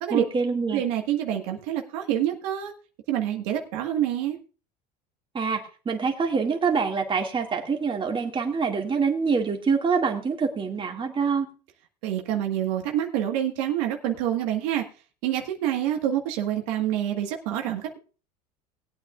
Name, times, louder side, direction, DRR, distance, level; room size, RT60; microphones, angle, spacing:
voice 1, 0.1-0.8 5.3-11.5, right 5 dB, 25° right, 2 dB, 2.2 m, -25 dB
voice 2, 0.7-2.7 3.1-4.4 12.0-14.8 15.2-18.0, right 11 dB, 70° right, 3 dB, 1.7 m, -27 dB
19.5 x 8.6 x 2.5 m, 0.35 s
hypercardioid pair, 90°, 21 cm